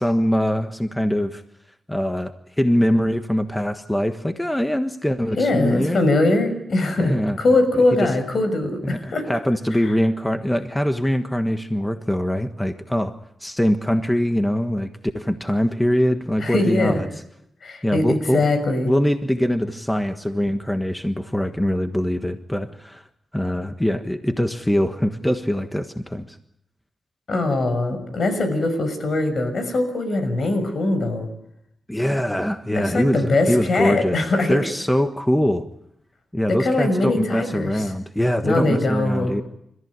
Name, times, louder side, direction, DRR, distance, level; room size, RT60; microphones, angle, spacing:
voice 1, 0.0-1.4 1.9-6.0 7.0-7.4 8.0-8.1 8.8-14.9 15.1-17.1 17.8-18.4 18.8-23.0 23.3-26.4 31.9-34.2 34.5-35.7 36.3-39.4, equal, 10° left, 7 dB, 1.4 m, -23 dB
voice 2, 5.4-9.3 16.4-17.0 17.6-18.9 27.3-31.3 32.7-34.6 36.5-37.8 38.4-39.4, left 2 dB, 65° left, 9 dB, 6.1 m, -21 dB
29.5 x 14.5 x 9.6 m, 0.78 s
cardioid pair, 70°, 0 cm